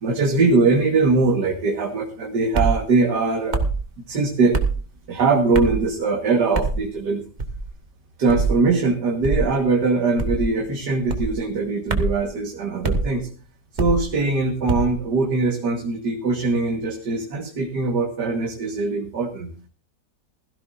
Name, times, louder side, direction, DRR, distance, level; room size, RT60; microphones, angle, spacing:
voice 1, 0.0-3.6 4.1-4.6 5.1-7.2 8.2-13.3 13.7-19.5, right 3 dB, 75° right, 2 dB, 2.1 m, -21 dB
sound 1, 2.5-2.8 3.5-3.8 4.5-4.8 5.5-5.8 6.5-6.8 7.4-7.7 8.3-8.5 9.2-9.5 10.2-10.5 11.1-11.3 11.9-12.2 12.8-13.0 13.8-14.1 14.7-14.9, right 3 dB, 25° right, 1.5 m, -23 dB
16.5 x 16.0 x 2.6 m, 0.38 s
omnidirectional pair, 1.8 m